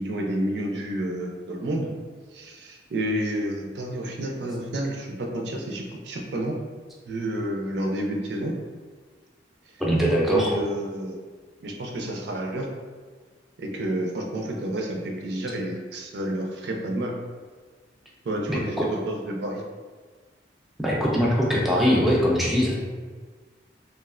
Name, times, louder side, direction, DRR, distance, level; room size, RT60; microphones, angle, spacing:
voice 1, 0.0-1.9 2.3-6.6 7.1-8.5 10.3-11.2 11.6-12.7 13.6-17.1 18.2-19.6, right 1 dB, 65° right, 1 dB, 0.4 m, -30 dB
voice 2, 9.8-10.5 18.8-18.9 20.8-22.8, equal, ahead, -4 dB, 0.4 m, -21 dB
3.1 x 2.4 x 2.4 m, 1.5 s
head